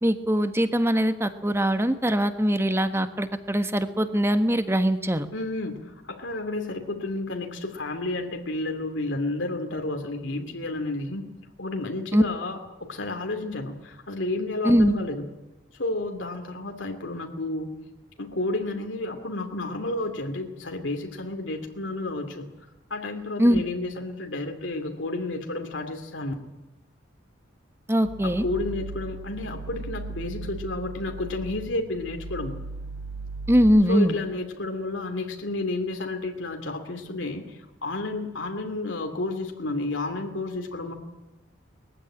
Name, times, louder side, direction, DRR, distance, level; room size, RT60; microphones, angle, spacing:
voice 1, 0.0-5.3 12.1-12.2 14.6-15.0 23.4-23.6 27.9-28.4 33.5-34.1, equal, 15° right, 9 dB, 1.3 m, -22 dB
voice 2, 5.3-11.3 11.6-15.3 15.7-17.7 18.2-22.5 22.9-26.3 28.2-32.6 33.9-40.9, left 2 dB, 80° left, 4 dB, 2.5 m, -31 dB
sound 1, 28.0-33.6, right 3 dB, 75° right, 3.2 m, -37 dB
21.0 x 15.0 x 10.0 m, 1.0 s
head